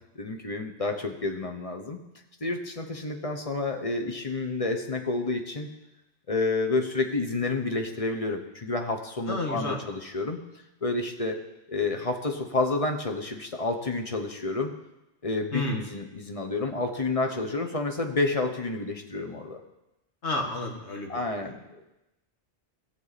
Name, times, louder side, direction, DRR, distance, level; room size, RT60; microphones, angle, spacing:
voice 1, 0.2-2.0 2.4-5.7 6.3-10.4 10.8-11.4 11.7-14.7 15.2-19.6 21.1-21.6, left 3 dB, 35° left, 4 dB, 1.0 m, -29 dB
voice 2, 9.3-9.8 15.5-15.8 20.2-21.9, left 2 dB, 90° left, 2 dB, 1.8 m, -32 dB
16.0 x 7.4 x 4.1 m, 0.93 s
omnidirectional pair, 1.1 m